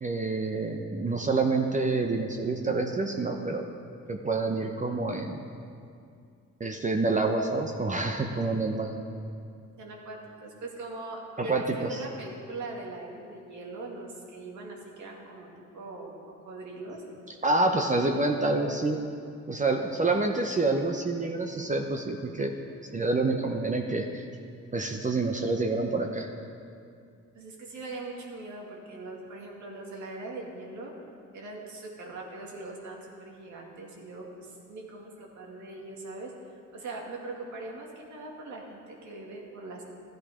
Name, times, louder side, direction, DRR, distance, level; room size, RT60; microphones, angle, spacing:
voice 1, 0.0-3.7 4.1-5.4 6.6-8.9 11.4-12.0 17.4-19.0 19.5-22.5 22.9-24.2 24.7-26.3, right 3 dB, 25° right, 3 dB, 0.9 m, -27 dB
voice 2, 9.8-17.0 27.3-30.9 31.3-36.4 36.7-39.8, right 2 dB, 70° right, -1 dB, 2.5 m, -41 dB
13.5 x 10.5 x 5.1 m, 2.4 s
cardioid pair, 90°, 30 cm